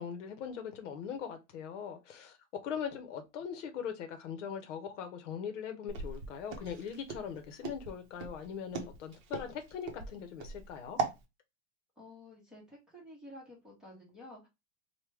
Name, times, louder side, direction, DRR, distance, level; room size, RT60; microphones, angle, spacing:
voice 1, 0.0-2.4 2.6-11.0, left 7 dB, 70° left, 0.8 m, -41 dB
Walk footsteps, 5.9-11.2, right 4 dB, 40° right, 0.7 m, -39 dB
voice 2, 12.0-14.5, left 1 dB, ahead, 0.9 m, -51 dB
3.1 x 2.2 x 3.2 m
supercardioid pair, 160°, 38 cm